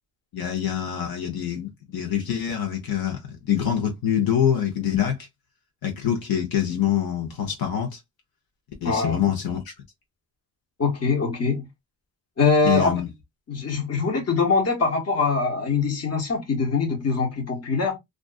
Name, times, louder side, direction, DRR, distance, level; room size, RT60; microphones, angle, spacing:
voice 1, 0.3-5.2 5.8-8.0 8.8-9.7 12.6-13.1, left 9 dB, 70° left, 0.9 m, -25 dB
voice 2, 8.8-9.3 10.8-11.7 12.4-13.0 13.5-18.0, left 4 dB, 40° left, 1.1 m, -23 dB
2.5 x 2.4 x 2.3 m
cardioid pair, 85°, 38 cm